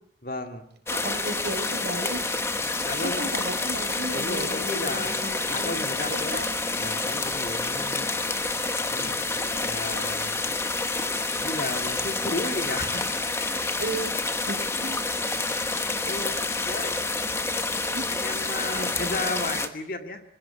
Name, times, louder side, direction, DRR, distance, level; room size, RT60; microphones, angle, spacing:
voice 1, 0.2-0.7 2.8-3.2 4.1-6.5 6.8-8.1 8.9-10.6 11.3-13.6 16.0-17.0 18.1-20.2, left 2 dB, 50° left, 6 dB, 2.2 m, -34 dB
sound 1, 0.9-19.7, left 3 dB, 15° left, 1.2 m, -28 dB
voice 2, 0.9-2.2 3.0-6.6 13.8-14.2 14.5-15.1 17.8-18.0, right 2 dB, 70° right, 5 dB, 5.3 m, -34 dB
25.5 x 17.0 x 8.6 m, 0.73 s
head